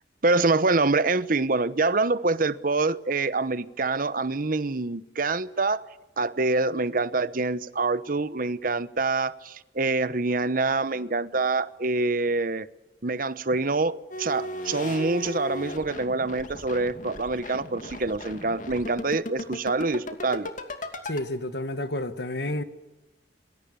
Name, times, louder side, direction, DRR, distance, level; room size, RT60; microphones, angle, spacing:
voice 1, 0.2-5.8 6.2-12.7 13.0-20.5, right 3 dB, 50° right, 1.0 m, -26 dB
sound 1, 14.1-21.2, left 1 dB, 45° left, 2.6 m, -36 dB
voice 2, 21.0-22.6, left 1 dB, 70° left, 1.9 m, -30 dB
28.0 x 22.0 x 7.0 m
head